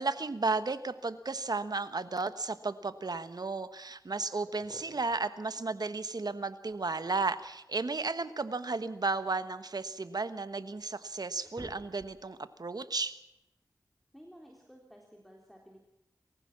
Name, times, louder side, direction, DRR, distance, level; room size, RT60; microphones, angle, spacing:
voice 1, 0.0-13.2, right 3 dB, 65° right, 12 dB, 1.3 m, -34 dB
sound 1, 4.5-5.2 6.7-7.5 8.8-10.2 10.8-10.9 11.2-12.4, right 1 dB, 20° right, 5.1 m, -53 dB
voice 2, 14.1-15.9, equal, ahead, 0 dB, 3.7 m, -54 dB
23.0 x 15.5 x 7.4 m, 0.88 s
wide cardioid pair, 50°, 7 cm